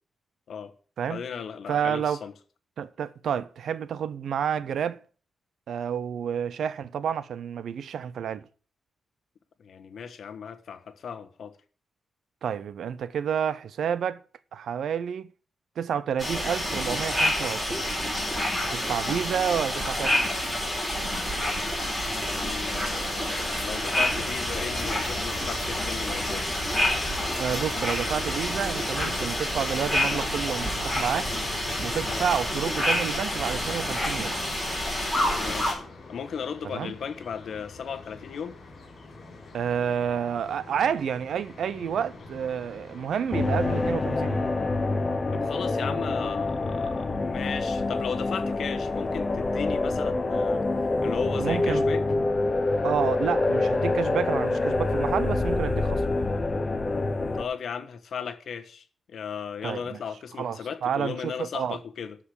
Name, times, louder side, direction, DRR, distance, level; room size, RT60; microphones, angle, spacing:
voice 1, 1.1-2.3 9.6-11.5 22.1-26.5 32.1-32.3 35.4-35.8 36.1-38.6 45.3-50.6 51.0-52.0 57.3-62.2, left 7 dB, 60° left, 1.3 m, -36 dB
voice 2, 1.7-2.2 2.8-5.0 5.7-8.4 12.4-14.2 14.5-15.3 15.8-17.9 18.7-20.3 27.4-31.3 31.8-34.4 36.6-36.9 39.5-44.5 46.0-46.1 51.4-51.9 52.8-56.0 59.6-60.0 60.4-61.8, right 8 dB, 70° right, 0.7 m, -29 dB
sound 1, 16.2-35.7, left 1 dB, 5° right, 4.0 m, -28 dB
sound 2, 24.0-43.9, left 3 dB, 45° left, 4.9 m, -44 dB
sound 3, 43.3-57.4, left 2 dB, 25° left, 0.9 m, -26 dB
12.5 x 5.0 x 8.4 m
wide cardioid pair, 165°, 0 cm